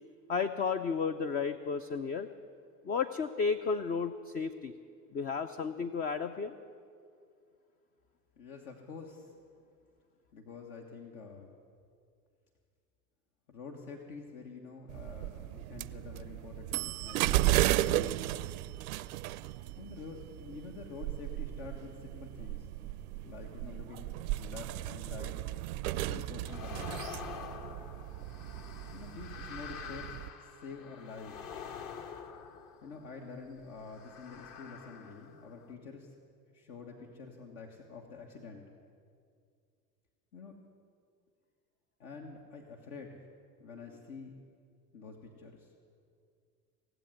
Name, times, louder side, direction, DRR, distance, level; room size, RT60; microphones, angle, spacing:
voice 1, 0.3-2.3 2.8-4.7 5.1-6.5, left 5 dB, 20° left, 10 dB, 0.4 m, -33 dB
voice 2, 8.4-9.3 10.3-11.5 13.5-18.2 19.8-22.7 23.2-25.4 25.8-27.0 28.9-31.4 32.8-36.1 36.5-38.6 40.3-40.5 42.0-43.2 43.6-44.3 44.9-45.7, left 4 dB, 65° left, 1 dB, 1.6 m, -47 dB
sound 1, 14.9-30.3, right 15 dB, 60° right, 0.6 m, -35 dB
sound 2, 26.5-33.2 33.9-35.7, left 7 dB, 45° left, 1.3 m, -46 dB
17.5 x 7.8 x 9.5 m, 2.3 s
figure-of-eight pair, 75°, 48 cm